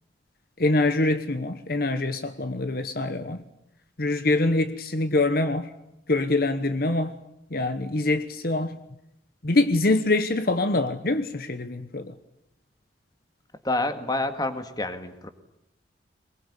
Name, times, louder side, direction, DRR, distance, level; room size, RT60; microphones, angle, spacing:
voice 1, 0.6-3.4 4.0-5.7 6.1-7.2 7.5-8.8 9.4-12.1, left 2 dB, 55° left, 1.1 m, -24 dB
voice 2, 13.6-15.3, left 2 dB, 20° left, 1.9 m, -28 dB
23.0 x 21.0 x 10.0 m
head